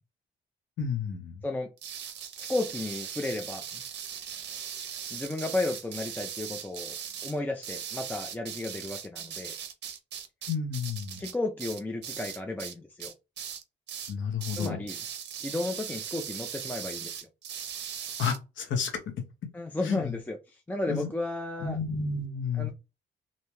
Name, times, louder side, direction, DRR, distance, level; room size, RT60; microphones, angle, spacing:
voice 1, 0.8-1.4 10.5-11.2 14.1-14.8 18.2-18.9 19.8-20.1 20.9-21.1 21.6-22.7, left 5 dB, 70° left, 0.9 m, -31 dB
sound 1, 1.8-12.7 13.0-13.6 13.9-14.1 14.4-18.4, right 8 dB, 60° right, 0.6 m, -39 dB
voice 2, 2.4-3.8 5.1-6.9 7.2-9.6 11.2-13.1 14.5-15.0 15.4-17.3 19.5-21.8 22.5-22.7, left 2 dB, 10° left, 0.4 m, -33 dB
2.7 x 2.2 x 3.0 m
cardioid pair, 90°, 20 cm